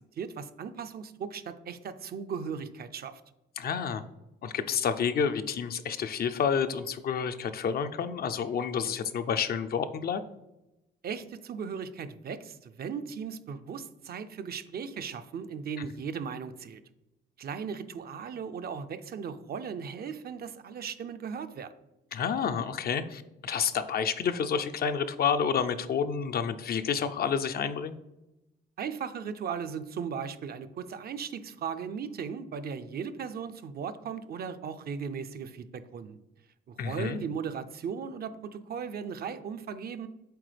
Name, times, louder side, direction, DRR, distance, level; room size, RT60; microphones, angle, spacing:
voice 1, 0.2-3.2 11.0-16.8 17.4-21.7 28.8-36.2 36.7-40.1, right 6 dB, 50° right, 10 dB, 0.5 m, -37 dB
voice 2, 3.6-4.0 4.4-10.2 22.1-28.0 36.8-37.2, left 7 dB, 50° left, 10 dB, 0.5 m, -29 dB
7.7 x 4.0 x 3.3 m, 0.93 s
cardioid pair, 90°, 20 cm